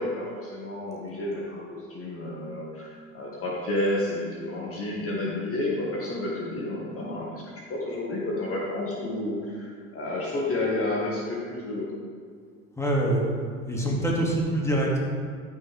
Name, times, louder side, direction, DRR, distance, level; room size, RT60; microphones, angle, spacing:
voice 1, 0.0-11.9, left 1 dB, 35° left, -4 dB, 2.1 m, -30 dB
voice 2, 12.8-13.2 13.7-15.0, right 1 dB, 5° left, -4 dB, 2.7 m, -24 dB
14.5 x 6.2 x 3.7 m, 2.1 s
hypercardioid pair, 75°, 40 cm